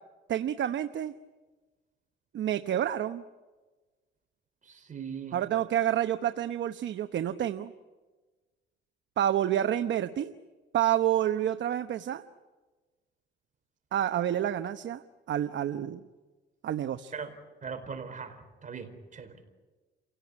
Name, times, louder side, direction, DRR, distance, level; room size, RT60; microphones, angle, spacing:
voice 1, 0.3-1.1 2.3-3.2 5.3-7.7 9.2-10.3 10.7-12.2 13.9-16.0 16.6-17.1, right 11 dB, 65° right, 9 dB, 1.0 m, -29 dB
voice 2, 4.6-5.4 17.1-17.3 17.6-19.4, right 6 dB, 40° right, 7 dB, 4.5 m, -40 dB
29.5 x 17.0 x 9.7 m, 1.3 s
cardioid pair, 90°, 20 cm